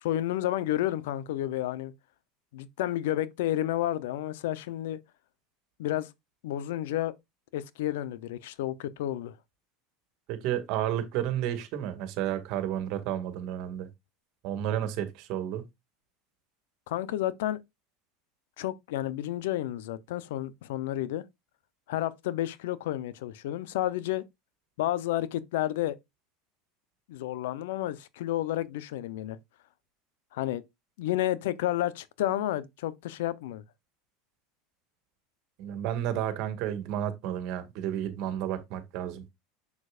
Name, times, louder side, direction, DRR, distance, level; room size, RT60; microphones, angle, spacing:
voice 1, 0.0-1.9 2.5-5.0 5.8-6.1 6.4-7.1 7.5-9.3 16.9-17.6 18.6-21.2 21.9-24.3 24.8-26.0 27.1-29.4 30.3-30.6 31.0-33.6, left 13 dB, 80° left, 0.7 m, -31 dB
voice 2, 10.3-13.9 14.4-15.6 35.6-39.2, right 11 dB, 60° right, 1.9 m, -31 dB
7.1 x 6.5 x 2.5 m
supercardioid pair, 100°, 0 cm